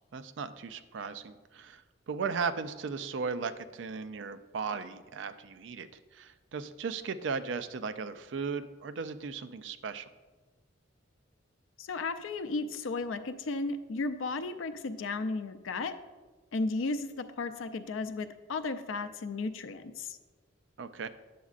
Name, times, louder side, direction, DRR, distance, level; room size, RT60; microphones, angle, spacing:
voice 1, 0.1-1.8 2.1-5.9 6.1-10.1 20.8-21.1, right 5 dB, 65° right, 11 dB, 0.4 m, -36 dB
voice 2, 11.8-15.9 16.5-20.2, left 3 dB, 90° left, 10 dB, 0.5 m, -34 dB
9.3 x 7.1 x 2.5 m, 1.3 s
head